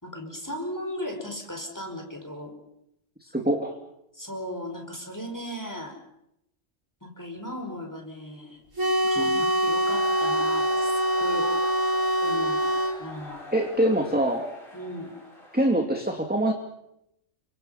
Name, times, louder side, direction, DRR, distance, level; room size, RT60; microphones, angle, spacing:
voice 1, 0.0-2.6 4.1-6.0 7.0-8.6 9.1-10.9 11.2-11.5 12.2-12.7 13.0-13.5 14.7-15.1, left 1 dB, 15° left, 3 dB, 5.2 m, -36 dB
voice 2, 3.3-3.8 9.2-9.5 13.5-14.4 15.5-16.5, right 1 dB, 5° right, 2 dB, 2.4 m, -24 dB
sound 1, 8.8-13.0, equal, 85° right, 6.6 m, -24 dB
sound 2, 9.8-15.7, left 1 dB, 45° left, 6.3 m, -43 dB
30.0 x 25.0 x 5.8 m, 0.82 s
omnidirectional pair, 1.3 m